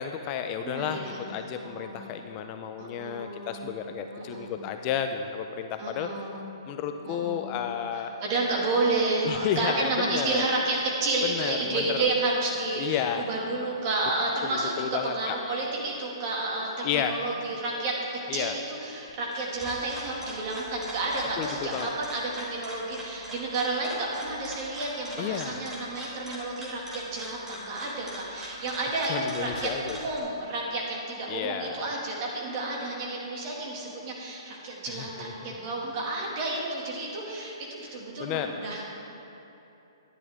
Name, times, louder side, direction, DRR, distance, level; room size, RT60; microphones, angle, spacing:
voice 1, 0.0-6.1 6.7-8.1 9.2-10.5 11.2-12.0 12.8-13.2 14.4-15.4 16.8-17.1 18.3-18.5 21.4-21.9 25.2-25.6 29.1-30.0 31.3-31.9 34.9-35.5 38.2-38.5, left 8 dB, 30° left, 6 dB, 0.5 m, -32 dB
voice 2, 0.6-2.1 2.8-3.8 4.1-4.6 5.8-6.5 7.1-7.6 7.9-38.9, right 2 dB, 40° right, -2 dB, 2.2 m, -31 dB
sound 1, 19.1-30.2, equal, 10° right, 1.8 m, -42 dB
11.0 x 10.0 x 3.6 m, 3.0 s
hypercardioid pair, 140°, 3 cm